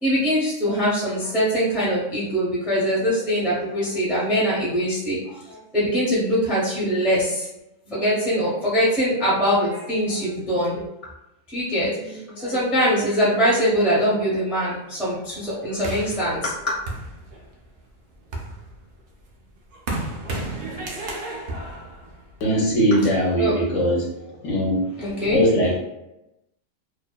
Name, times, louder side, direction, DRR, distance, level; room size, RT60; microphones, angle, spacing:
voice 1, 0.0-7.5 7.8-10.9 11.5-16.7 23.4-23.6 25.0-25.4, equal, ahead, -7 dB, 0.4 m, -23 dB
sound 1, 15.8-17.7 18.1-22.8, right 2 dB, 65° right, 0.5 m, -33 dB
voice 2, 22.4-24.1 24.4-24.8 25.3-25.8, equal, 70° left, -3 dB, 1.0 m, -20 dB
2.6 x 2.1 x 2.2 m, 0.91 s
omnidirectional pair, 1.4 m